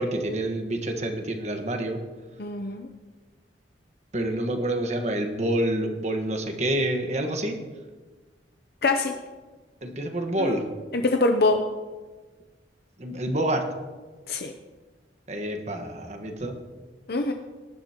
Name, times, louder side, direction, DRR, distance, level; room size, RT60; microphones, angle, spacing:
voice 1, 0.0-2.0 4.1-7.6 9.8-10.6 13.0-13.6 15.3-16.5, right 1 dB, 40° right, 4 dB, 1.4 m, -27 dB
voice 2, 2.4-2.9 8.8-9.1 10.4-10.6 10.9-11.6 14.3-14.5 17.1-17.3, left 2 dB, 60° left, 5 dB, 0.7 m, -24 dB
19.0 x 11.0 x 3.0 m, 1.3 s
head